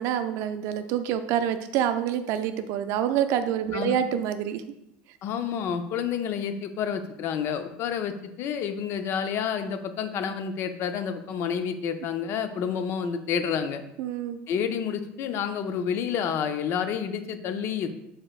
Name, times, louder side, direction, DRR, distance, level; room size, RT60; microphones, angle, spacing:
voice 1, 0.0-4.6 14.0-14.4, right 9 dB, 65° right, 10 dB, 0.4 m, -27 dB
voice 2, 5.2-13.8 14.5-17.9, left 7 dB, 50° left, 9 dB, 0.5 m, -29 dB
4.8 x 4.3 x 2.4 m, 0.82 s
supercardioid pair, 120°, 5 cm